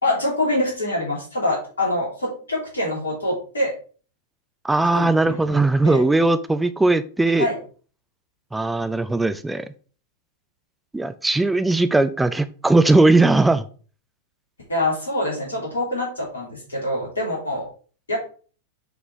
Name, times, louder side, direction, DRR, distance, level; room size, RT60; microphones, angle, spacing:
voice 1, 0.0-3.7 4.9-6.0 7.3-7.6 14.7-17.7 18.1-18.2, left 1 dB, 75° left, -3 dB, 3.0 m, -25 dB
voice 2, 4.6-7.5 8.5-9.6 10.9-13.7, right 2 dB, 5° right, 12 dB, 0.5 m, -19 dB
6.9 x 4.4 x 3.3 m, 0.40 s
figure-of-eight pair, 90°, 0 cm